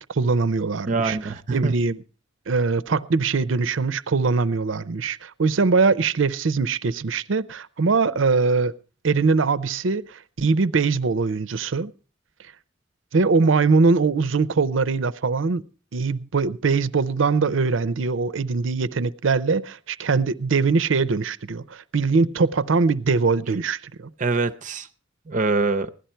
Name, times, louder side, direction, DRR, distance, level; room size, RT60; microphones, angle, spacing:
voice 1, 0.0-1.2 1.5-2.0 2.5-8.7 9.0-11.9 13.1-15.6 15.9-24.1, right 4 dB, 80° right, 0.6 m, -22 dB
voice 2, 0.9-1.8 24.2-24.9 25.3-25.9, right 3 dB, 40° right, 0.6 m, -24 dB
16.5 x 11.5 x 4.4 m
head